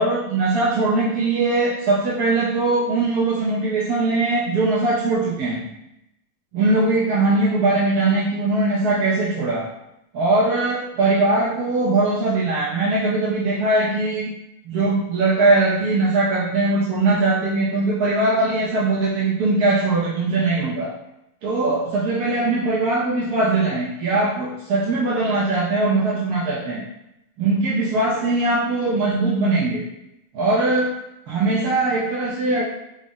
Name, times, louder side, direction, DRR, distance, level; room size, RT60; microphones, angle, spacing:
voice 1, 0.0-5.6 6.5-9.7 10.1-14.3 14.6-20.9 21.4-26.8 27.4-29.8 30.3-30.9 31.3-32.6, right 2 dB, 80° right, -7 dB, 1.2 m, -20 dB
3.6 x 2.0 x 3.5 m, 0.85 s
omnidirectional pair, 1.6 m